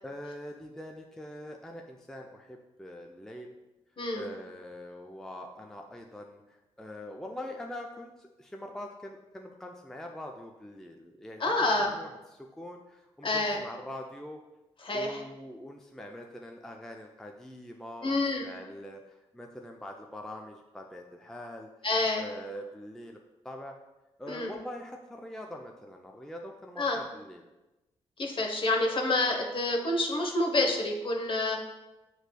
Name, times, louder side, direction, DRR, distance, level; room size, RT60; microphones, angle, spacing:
voice 1, 0.0-3.5 4.2-14.4 14.9-21.7 22.2-23.2 23.4-23.7 24.2-27.4, left 1 dB, 5° left, 2 dB, 0.4 m, -43 dB
voice 2, 11.4-11.9 13.2-13.6 14.8-15.2 18.0-18.4 21.8-22.2 24.3-24.5 26.8-27.0 28.2-31.6, left 2 dB, 40° left, 1 dB, 0.9 m, -28 dB
6.4 x 3.1 x 2.2 m, 1.0 s
hypercardioid pair, 40°, 13 cm